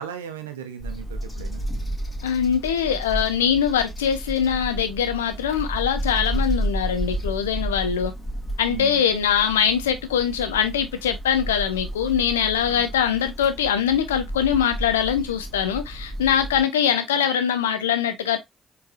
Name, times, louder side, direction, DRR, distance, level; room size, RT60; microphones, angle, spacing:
voice 1, 0.0-1.6 8.7-9.1 12.7-13.0, right 9 dB, 85° right, 0.5 m, -36 dB
sound 1, 0.8-16.6, right 1 dB, 25° left, 1.9 m, -32 dB
voice 2, 2.2-8.1 8.6-18.4, left 8 dB, 85° left, 0.5 m, -22 dB
4.7 x 3.2 x 2.4 m
hypercardioid pair, 45°, 0 cm